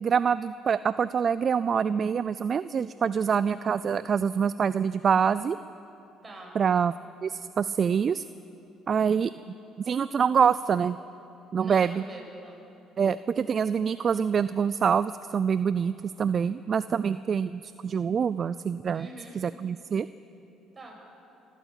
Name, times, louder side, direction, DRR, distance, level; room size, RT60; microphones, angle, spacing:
voice 1, 0.0-5.6 6.6-6.9 7.2-8.2 8.9-9.3 9.9-11.0 11.5-12.0 13.0-15.9 16.2-19.1 19.3-20.1, right 7 dB, 45° right, 15 dB, 0.4 m, -25 dB
voice 2, 6.2-6.6 11.6-12.6 18.9-19.4 20.7-20.9, right 2 dB, 25° right, 0 dB, 6.3 m, -44 dB
26.0 x 13.5 x 8.3 m, 3.0 s
supercardioid pair, 85°, 0 cm